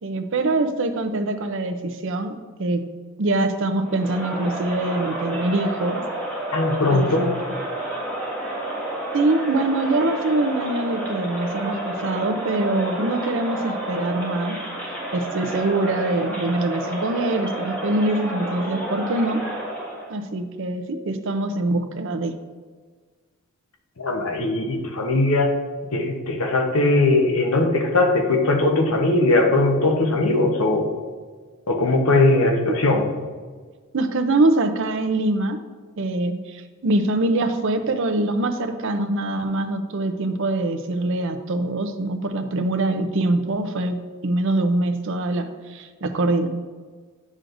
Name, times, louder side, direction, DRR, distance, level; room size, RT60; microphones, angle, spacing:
voice 1, 0.0-2.9 3.2-6.0 6.9-7.3 9.1-14.6 15.1-19.4 20.1-22.3 33.9-35.6 36.0-46.5, right 2 dB, 60° right, 7 dB, 0.6 m, -24 dB
Crowd, 3.8-20.1, right 1 dB, 10° left, 1.5 m, -30 dB
voice 2, 6.5-7.3 24.0-25.5 25.9-30.9 31.7-33.1, left 2 dB, 75° left, 2 dB, 0.9 m, -19 dB
9.2 x 6.3 x 2.6 m, 1.5 s
head